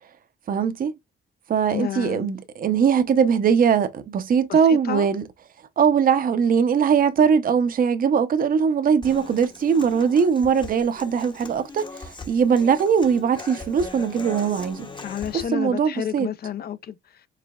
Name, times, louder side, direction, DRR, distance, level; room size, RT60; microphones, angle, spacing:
voice 1, 0.5-0.9 1.5-5.2 5.8-14.9 15.3-16.3, right 7 dB, 45° right, 0.7 m, -21 dB
voice 2, 1.7-2.4 4.5-5.1 15.0-17.0, left 9 dB, 50° left, 0.6 m, -30 dB
Human voice / Acoustic guitar, 9.0-15.4, left 3 dB, 25° left, 0.9 m, -39 dB
4.9 x 3.3 x 2.3 m
cardioid pair, 90°, 20 cm